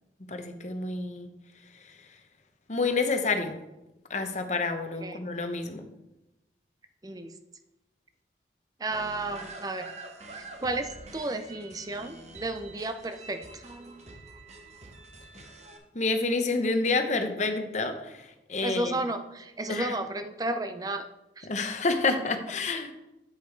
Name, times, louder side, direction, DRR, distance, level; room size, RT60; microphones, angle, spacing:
voice 1, 0.2-1.3 1.6-2.2 2.7-3.6 4.1-5.8 15.9-18.9 19.7-20.0 21.4-22.9, left 3 dB, 40° left, 6 dB, 0.8 m, -29 dB
voice 2, 8.8-9.9 10.4-14.0 18.6-21.1 21.4-21.5, right 2 dB, 20° right, 9 dB, 0.5 m, -33 dB
sound 1, 8.9-15.8, right 2 dB, 40° right, 0.9 m, -46 dB
8.9 x 5.2 x 4.6 m, 0.94 s
head